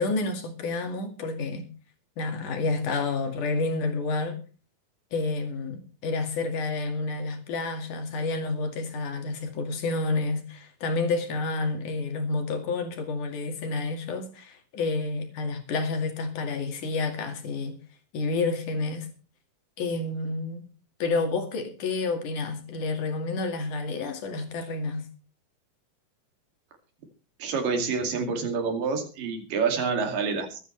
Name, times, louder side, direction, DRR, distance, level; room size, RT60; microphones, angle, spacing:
voice 1, 0.0-1.7 2.2-4.4 5.1-17.8 18.1-19.1 19.8-20.6 21.0-25.1, left 3 dB, 60° left, 5 dB, 3.5 m, -29 dB
voice 2, 27.4-30.6, right 5 dB, 65° right, 3 dB, 4.1 m, -27 dB
23.5 x 10.0 x 3.3 m, 0.36 s
omnidirectional pair, 4.2 m